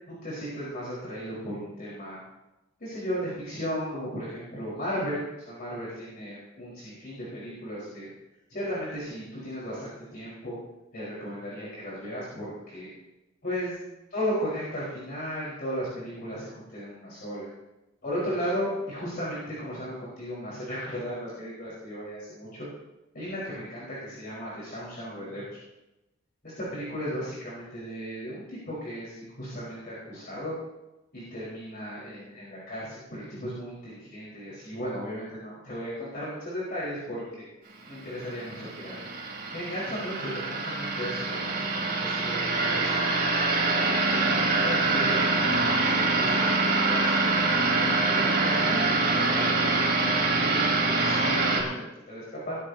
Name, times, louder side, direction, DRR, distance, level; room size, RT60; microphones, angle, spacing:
voice 1, 0.2-2.2 2.8-8.1 8.5-10.6 10.9-12.9 13.4-13.8 14.1-17.5 18.0-22.7 23.1-25.4 26.4-30.6 31.1-37.4 37.9-39.1 39.5-43.2 43.7-47.1 47.8-52.6, equal, 50° left, -8 dB, 4.5 m, -35 dB
sound 1, 38.1-51.6, right 3 dB, 50° right, 3.8 m, -25 dB
21.5 x 11.5 x 2.8 m, 0.99 s
head